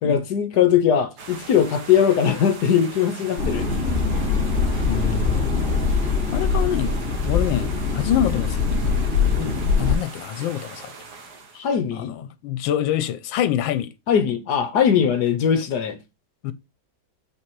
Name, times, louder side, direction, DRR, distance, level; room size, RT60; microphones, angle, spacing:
voice 1, 0.0-3.7 9.4-9.6 11.6-12.1 14.1-16.0, left 8 dB, 65° left, 1.3 m, -20 dB
sound 1, 1.2-11.7, right 4 dB, 60° right, 1.8 m, -40 dB
sound 2, 3.4-10.0, left 4 dB, 40° left, 2.9 m, -22 dB
voice 2, 4.9-5.5 6.3-9.1 9.8-10.9 11.9-13.9 16.4-16.5, left 11 dB, 85° left, 1.4 m, -26 dB
5.8 x 4.8 x 4.6 m
omnidirectional pair, 2.1 m